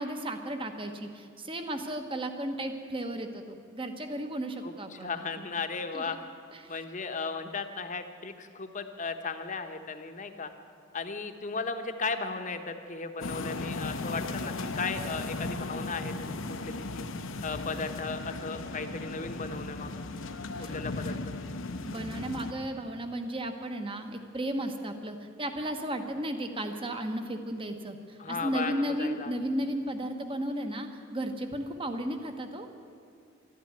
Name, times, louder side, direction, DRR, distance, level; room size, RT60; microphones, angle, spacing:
voice 1, 0.0-5.1 5.9-6.1 6.5-6.7 20.6-20.7 21.8-32.7, right 1 dB, 25° right, 7 dB, 1.2 m, -34 dB
voice 2, 4.6-6.2 6.7-10.5 10.9-17.0 17.4-20.1 20.6-21.4 28.2-29.3, left 4 dB, 40° left, 7 dB, 1.0 m, -36 dB
sound 1, 13.2-22.5, left 2 dB, 70° left, 0.9 m, -36 dB
13.0 x 11.5 x 9.6 m, 2.5 s
head